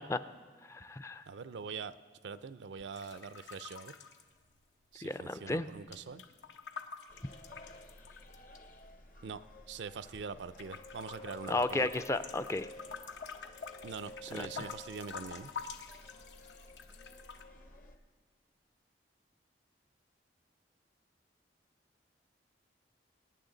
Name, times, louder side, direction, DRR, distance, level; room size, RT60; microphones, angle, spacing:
voice 1, 0.7-1.2 5.0-5.7 11.5-12.7 14.3-14.7, left 2 dB, 15° left, 11 dB, 0.3 m, -34 dB
voice 2, 1.3-2.0 2.2-3.9 4.9-6.2 9.2-9.4 9.7-12.0 13.8-15.5, right 5 dB, 80° right, 14 dB, 0.5 m, -43 dB
sound 1, 2.9-5.0 5.2-8.6 9.2-10.2 10.6-17.4, left 6 dB, 85° left, 0.8 m, -48 dB
sound 2, 7.1-18.0, left 1 dB, 50° left, 0.8 m, -52 dB
24.0 x 9.4 x 3.9 m, 1.5 s
head